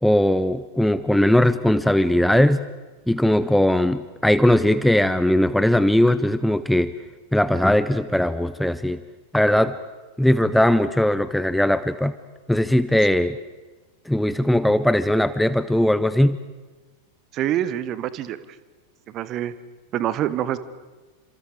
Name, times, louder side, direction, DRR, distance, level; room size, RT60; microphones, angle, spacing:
voice 1, 0.0-2.7 3.1-6.9 7.3-9.0 9.3-9.8 10.2-12.1 12.5-13.4 14.1-16.4, left 1 dB, ahead, 14 dB, 0.7 m, -19 dB
voice 2, 17.3-18.4 19.1-19.5 19.9-20.6, right 12 dB, 35° right, 15 dB, 1.2 m, -25 dB
29.5 x 27.0 x 5.0 m, 1.2 s
figure-of-eight pair, 90°, 0 cm